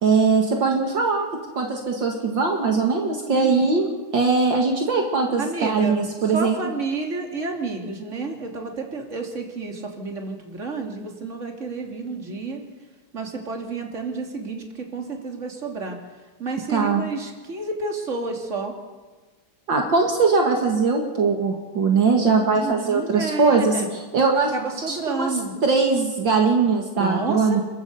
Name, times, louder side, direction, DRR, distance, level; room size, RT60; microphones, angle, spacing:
voice 1, 0.0-1.3 1.6-6.6 16.7-17.0 19.7-24.5 24.9-25.3 25.6-27.6, right 4 dB, 65° right, 2 dB, 2.6 m, -21 dB
voice 2, 3.3-3.7 5.4-12.6 13.1-16.0 16.4-18.7 22.6-23.9 24.5-25.5 26.9-27.6, right 3 dB, 35° right, 2 dB, 3.1 m, -30 dB
28.0 x 13.0 x 8.2 m, 1.3 s
omnidirectional pair, 2.2 m